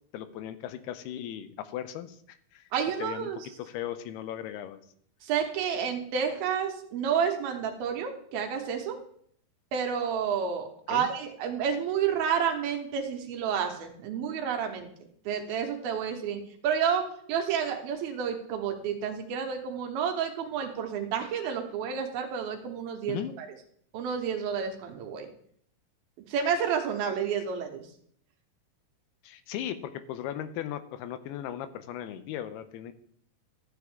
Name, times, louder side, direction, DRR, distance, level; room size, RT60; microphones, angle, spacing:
voice 1, 0.1-2.7 3.0-3.3 3.6-4.8 10.9-11.1 23.1-23.3 29.2-32.9, left 11 dB, 80° left, 12 dB, 2.6 m, -37 dB
voice 2, 2.7-3.5 5.2-9.0 9.7-14.9 15.3-17.0 17.3-23.5 23.9-25.3 26.3-27.8, right 7 dB, 75° right, 3 dB, 2.8 m, -30 dB
13.0 x 8.2 x 3.6 m, 0.64 s
omnidirectional pair, 4.7 m